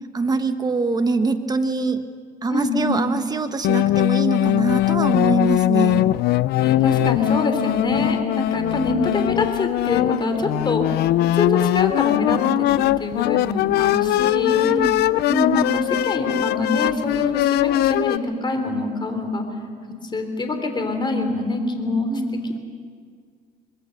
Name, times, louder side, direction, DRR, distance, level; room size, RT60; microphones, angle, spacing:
voice 1, 0.1-2.0 2.4-6.0 14.6-15.0 22.1-22.6, right 3 dB, 25° right, 8 dB, 1.3 m, -24 dB
voice 2, 2.5-3.0 6.6-11.1 11.3-14.6 15.3-19.5 20.1-22.6, left 2 dB, 25° left, 5 dB, 3.6 m, -25 dB
sound 1, 3.6-18.2, left 15 dB, 70° left, 0.5 m, -20 dB
25.0 x 21.0 x 6.6 m, 2.1 s
cardioid pair, 110°, 17 cm